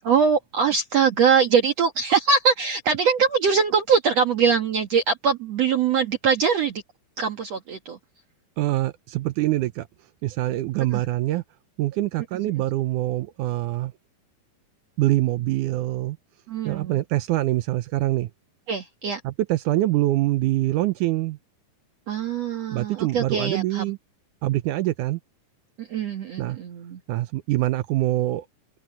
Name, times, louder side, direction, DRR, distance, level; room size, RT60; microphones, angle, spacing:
voice 1, 0.0-6.8 7.2-8.0 10.9-11.0 16.5-17.0 18.7-19.2 22.1-23.8 25.8-27.0, right 6 dB, 55° right, 2.4 m, -22 dB
voice 2, 8.6-9.9 10.2-11.4 11.8-13.9 15.0-16.2 16.7-18.3 19.2-21.4 22.7-24.0 24.4-25.2 26.4-26.6 27.1-28.5, right 16 dB, 80° right, 1.9 m, -24 dB
omnidirectional pair, 4.0 m